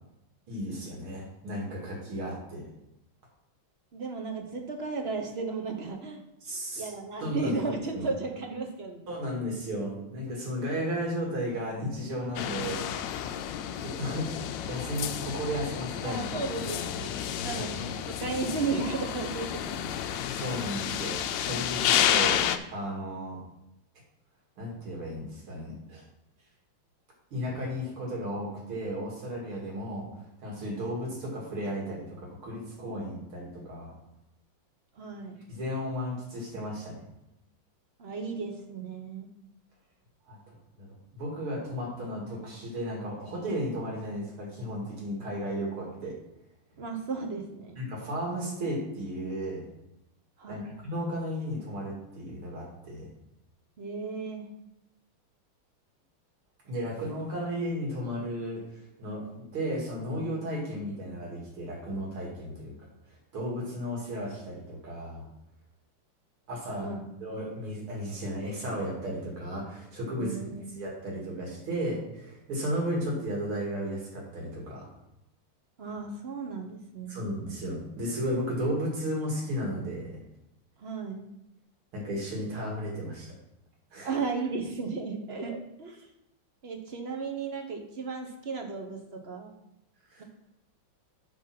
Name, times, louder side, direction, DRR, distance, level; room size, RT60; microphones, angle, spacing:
voice 1, 0.5-2.6 6.4-6.9 7.2-7.5 7.9-8.1 9.1-12.9 13.8-14.3 14.7-16.2 17.6-17.7 20.3-22.4 22.7-23.4 24.6-26.0 27.3-30.1 30.4-33.9 35.5-37.0 40.3-40.9 41.1-46.2 47.8-49.6 50.5-53.1 56.6-58.6 59.0-62.7 63.3-65.2 66.5-66.9 67.2-70.4 70.7-74.8 77.1-80.2 81.9-83.3 83.9-84.1 90.1-90.2, equal, 85° right, -2 dB, 3.3 m, -34 dB
voice 2, 3.9-6.2 6.7-9.1 16.0-17.2 17.4-19.9 35.0-35.4 38.0-39.3 46.8-47.8 50.4-50.8 53.8-54.5 66.8-67.0 70.2-70.7 75.8-77.3 80.8-81.3 84.0-86.0 86.6-89.5, right 4 dB, 45° right, 3 dB, 0.9 m, -35 dB
sound 1, 12.4-22.6, left 10 dB, 75° left, 1.2 m, -30 dB
7.1 x 5.9 x 5.9 m, 0.89 s
omnidirectional pair, 2.3 m